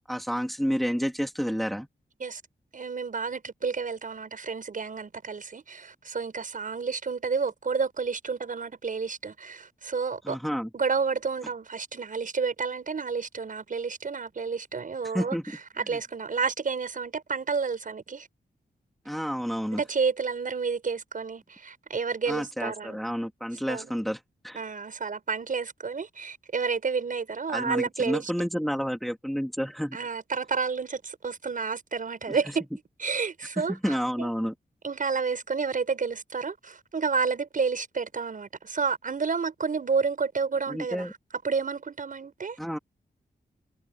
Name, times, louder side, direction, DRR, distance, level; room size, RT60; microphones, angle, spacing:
voice 1, 0.1-1.9 10.2-10.7 15.1-15.4 19.0-19.8 22.3-24.2 24.4-24.6 27.5-30.0 32.3-32.4 33.6-34.5 40.7-41.1 42.6-42.8, equal, ahead, 2.7 m, -30 dB
voice 2, 2.7-10.4 10.7-15.4 15.8-18.3 19.7-23.1 23.7-23.9 24.5-28.3 29.9-32.7 33.0-34.3 34.8-41.1 41.4-42.6, right 5 dB, 55° right, 6.3 m, -30 dB
wide cardioid pair, 135°, 17 cm